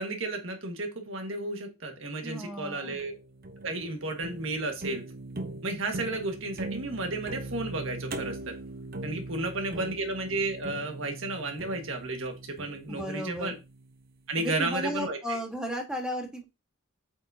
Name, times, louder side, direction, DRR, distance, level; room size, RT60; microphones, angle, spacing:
voice 1, 0.0-3.1 3.6-5.0 5.6-8.5 9.0-13.5 14.3-15.4, right 2 dB, 65° right, 4 dB, 1.6 m, -33 dB
voice 2, 2.2-3.0 9.3-9.9 12.9-13.5 14.3-16.4, equal, 5° right, 2 dB, 1.4 m, -35 dB
sound 1, 3.0-14.2, right 2 dB, 45° right, 0.7 m, -41 dB
8.3 x 5.2 x 2.7 m, 0.26 s
head